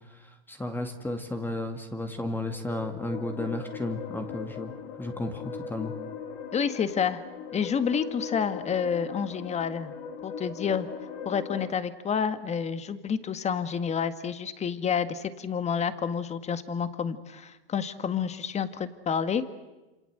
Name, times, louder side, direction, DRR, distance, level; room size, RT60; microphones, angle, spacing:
voice 1, 0.5-4.7 5.0-5.9, left 2 dB, 5° left, 6 dB, 2.2 m, -33 dB
sound 1, 2.3-11.7, left 6 dB, 50° left, 3.2 m, -39 dB
voice 2, 6.5-7.2 7.5-9.9 10.2-10.9 11.3-19.4, left 7 dB, 20° left, 12 dB, 1.8 m, -29 dB
27.0 x 27.0 x 7.9 m, 1.1 s
hypercardioid pair, 120°, 30 cm